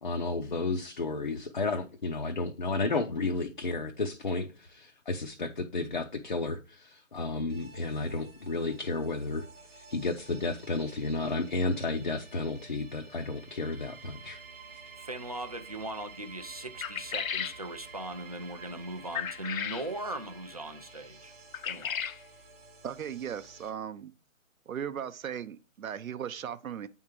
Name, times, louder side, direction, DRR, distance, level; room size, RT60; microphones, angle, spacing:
voice 1, 0.0-9.5 9.8-14.4, left 3 dB, 40° left, 0.5 m, -32 dB
sound 1, 7.5-23.7, right 4 dB, 10° right, 0.9 m, -51 dB
voice 2, 15.0-21.3 21.6-22.0, right 1 dB, 30° right, 0.4 m, -39 dB
sound 2, 16.8-17.6 19.1-19.9 21.5-22.2, left 8 dB, 75° left, 0.6 m, -34 dB
voice 3, 22.8-24.1 24.7-26.9, right 8 dB, 80° right, 0.7 m, -37 dB
8.7 x 3.6 x 4.4 m
hypercardioid pair, 160°, 41 cm